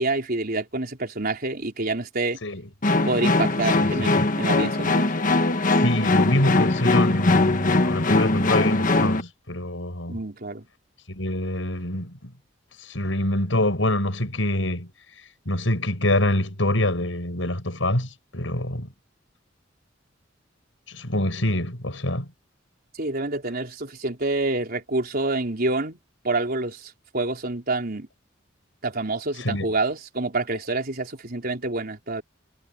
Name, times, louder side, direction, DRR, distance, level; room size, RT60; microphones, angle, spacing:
voice 1, 0.0-2.4 3.0-4.1 4.4-5.1 10.1-10.6 23.0-26.0 26.2-28.1 28.8-32.2, right 2 dB, 55° right, 4.4 m, -27 dB
sound 1, 2.8-9.2, left 2 dB, 45° left, 1.4 m, -21 dB
voice 2, 3.7-4.3 5.7-10.2 11.1-12.3 12.8-14.9 15.5-18.9 20.9-22.3 29.4-29.7, left 1 dB, 90° left, 6.0 m, -25 dB
head